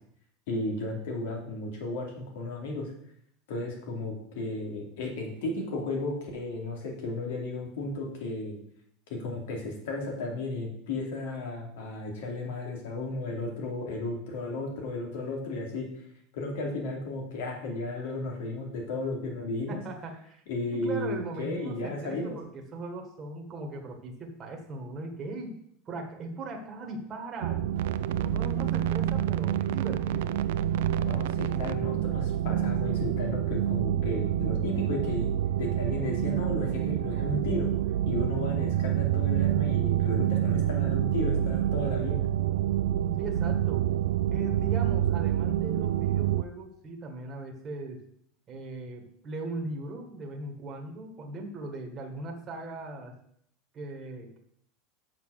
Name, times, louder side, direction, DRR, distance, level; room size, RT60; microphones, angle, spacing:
voice 1, 0.5-2.9 3.5-8.6 9.1-16.0 16.3-19.8 20.5-22.4 31.0-35.3 35.6-37.7 38.0-42.2, left 2 dB, 80° left, 1 dB, 2.8 m, -34 dB
voice 2, 19.7-20.4 20.7-25.6 25.8-27.7 28.1-30.3 43.2-43.8 44.3-48.0 48.5-53.1 53.7-54.4, right 2 dB, 20° right, 2 dB, 1.5 m, -39 dB
sound 1, 27.4-46.4, right 11 dB, 85° right, 0.4 m, -27 dB
7.4 x 5.9 x 6.5 m, 0.68 s
supercardioid pair, 165°, 0 cm